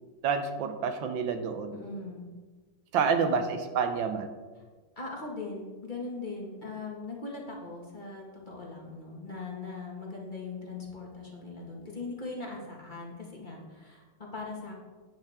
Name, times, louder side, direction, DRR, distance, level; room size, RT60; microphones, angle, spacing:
voice 1, 0.2-1.8 2.9-4.3, right 6 dB, 70° right, 7 dB, 1.4 m, -28 dB
voice 2, 1.7-2.3 2.9-3.4 4.9-14.0 14.3-14.7, left 3 dB, 25° left, -2 dB, 1.7 m, -40 dB
10.0 x 9.1 x 3.6 m, 1.4 s
omnidirectional pair, 2.4 m